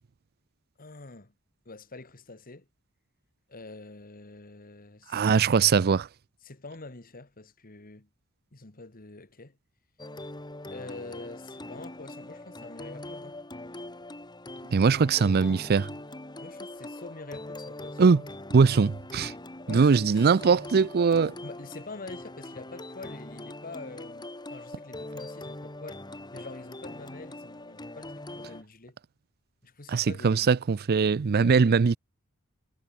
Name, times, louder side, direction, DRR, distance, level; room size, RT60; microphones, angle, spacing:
voice 1, 0.8-1.3 1.7-2.7 3.5-5.4 6.4-8.1 8.5-9.6 10.7-13.4 16.4-18.1 19.7-20.4 21.4-26.0 26.3-29.0 29.6-30.6 31.4-31.6, left 3 dB, 40° left, 1.8 m, -45 dB
voice 2, 5.1-6.1 14.7-15.9 18.0-18.2 18.5-19.3 19.7-21.3 29.9-32.0, right 5 dB, 45° right, 0.4 m, -21 dB
sound 1, 10.0-28.6, left 1 dB, 20° left, 2.8 m, -42 dB
head